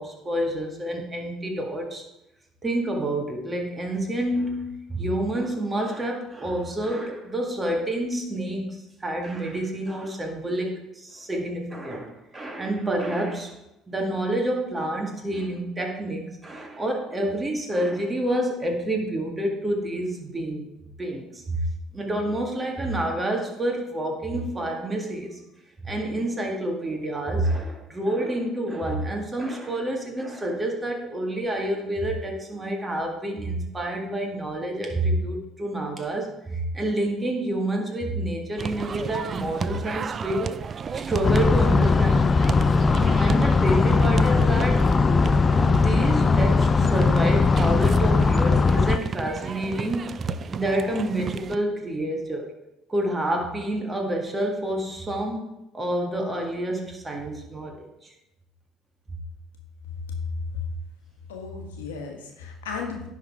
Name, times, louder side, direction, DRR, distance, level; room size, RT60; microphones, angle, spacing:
voice 1, 0.0-2.0 2.6-13.5 13.9-20.7 21.0-21.6 21.9-25.4 25.8-40.6 40.9-42.7 43.1-44.8 45.6-52.5 52.9-55.5 55.7-58.1, right 1 dB, 25° right, 2 dB, 1.8 m, -28 dB
sound 1, 38.6-51.6, right 6 dB, 40° right, 0.3 m, -33 dB
sound 2, 41.2-49.0, left 4 dB, 35° left, 0.4 m, -19 dB
voice 2, 60.2-60.6 61.3-63.1, left 5 dB, 90° left, 2 dB, 1.2 m, -34 dB
10.0 x 3.9 x 4.7 m, 0.90 s
hypercardioid pair, 65°, 0 cm